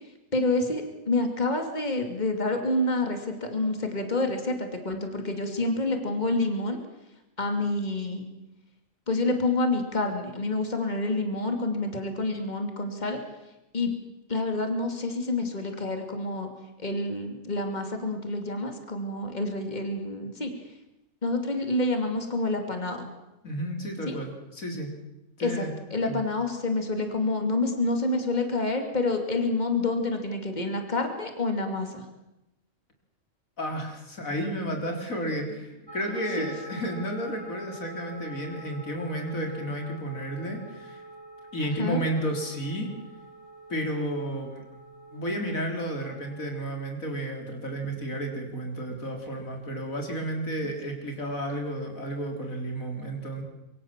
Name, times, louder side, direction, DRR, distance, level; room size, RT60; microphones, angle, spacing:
voice 1, 0.3-6.8 7.4-8.3 9.1-13.2 13.7-13.9 14.3-16.5 16.8-20.5 21.2-23.1 24.1-24.2 25.4-25.6 25.9-32.0 36.4-36.5 41.8-42.0, left 2 dB, 30° left, 5 dB, 2.9 m, -28 dB
voice 2, 23.4-24.9 25.4-25.7 26.0-26.2 33.6-41.0 41.5-42.9 43.7-44.6 45.1-53.4, right 1 dB, 90° left, 3 dB, 4.2 m, -32 dB
sound 1, 35.9-46.9, right 1 dB, 20° right, 2.8 m, -46 dB
25.5 x 23.5 x 7.5 m, 0.94 s
omnidirectional pair, 1.4 m